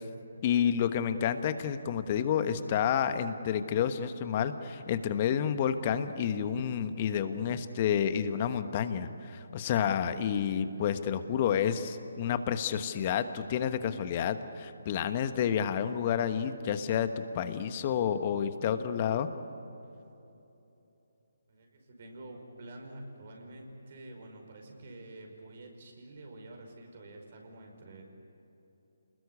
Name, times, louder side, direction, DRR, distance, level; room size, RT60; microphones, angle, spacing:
voice 1, 0.4-19.3, left 8 dB, 35° left, 10 dB, 1.3 m, -30 dB
voice 2, 21.5-28.0, right 1 dB, 50° right, 2 dB, 5.4 m, -48 dB
28.5 x 20.5 x 8.4 m, 3.0 s
figure-of-eight pair, 145°, 0 cm